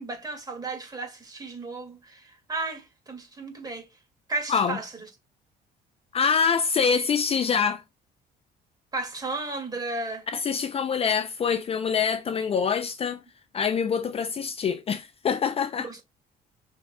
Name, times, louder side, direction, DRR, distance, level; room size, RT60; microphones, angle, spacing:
voice 1, 0.0-3.9 4.3-5.1 8.9-10.3 15.8-16.0, right 3 dB, 20° right, 2.1 m, -34 dB
voice 2, 6.1-7.8 10.3-13.2 13.5-15.9, left 6 dB, 35° left, 0.5 m, -25 dB
6.2 x 3.6 x 2.2 m
cardioid pair, 110°, 17 cm